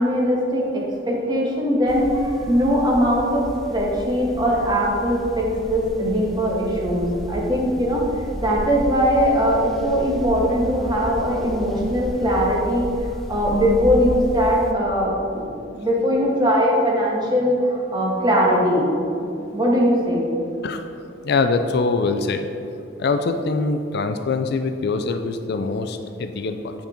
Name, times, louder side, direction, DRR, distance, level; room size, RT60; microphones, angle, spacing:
voice 1, 0.0-8.0 8.4-12.9 13.3-17.6 17.9-18.8 19.2-20.2, equal, 20° right, -4 dB, 1.5 m, -20 dB
sound 1, 1.9-14.7, equal, ahead, 0.5 m, -33 dB
voice 2, 21.2-22.5 23.0-26.7, left 3 dB, 55° left, 7 dB, 0.4 m, -23 dB
9.3 x 5.3 x 4.4 m, 2.6 s
head